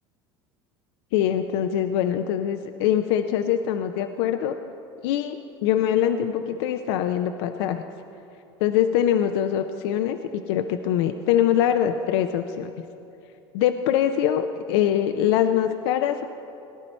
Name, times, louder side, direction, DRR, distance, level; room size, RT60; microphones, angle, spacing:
voice 1, 1.1-4.6 5.0-7.8 8.6-12.7 13.5-16.2, left 10 dB, 70° left, 7 dB, 0.6 m, -23 dB
18.5 x 10.5 x 4.4 m, 2.8 s
hypercardioid pair, 85°, 14 cm